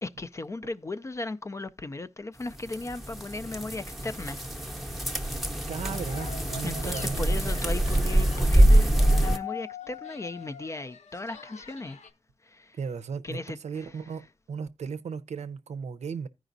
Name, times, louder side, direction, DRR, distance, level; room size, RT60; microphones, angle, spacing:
voice 1, 0.0-4.5 4.8-5.4 6.6-12.0 12.4-12.8 13.2-13.9, left 2 dB, 25° left, 0.4 m, -37 dB
sound 1, 2.5-9.4, right 1 dB, ahead, 0.7 m, -24 dB
sound 2, 5.7-8.6 8.9-12.1, left 8 dB, 70° left, 0.8 m, -43 dB
voice 2, 5.7-8.7 12.8-14.2 14.5-16.3, right 6 dB, 65° right, 0.6 m, -36 dB
15.0 x 5.0 x 2.6 m
wide cardioid pair, 145°, 12 cm